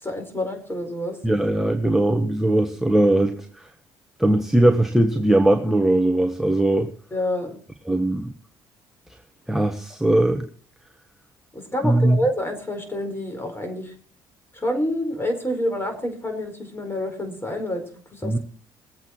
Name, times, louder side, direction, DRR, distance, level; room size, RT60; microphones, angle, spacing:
voice 1, 0.0-1.2 7.1-7.6 11.5-13.9 14.5-18.4, left 1 dB, 20° left, 5 dB, 5.0 m, -28 dB
voice 2, 1.2-3.7 4.2-6.9 7.9-8.3 9.5-10.5 11.8-12.2 18.2-18.4, right 1 dB, 5° right, 4 dB, 1.4 m, -20 dB
20.0 x 8.0 x 4.6 m, 0.43 s
hypercardioid pair, 50°, 12 cm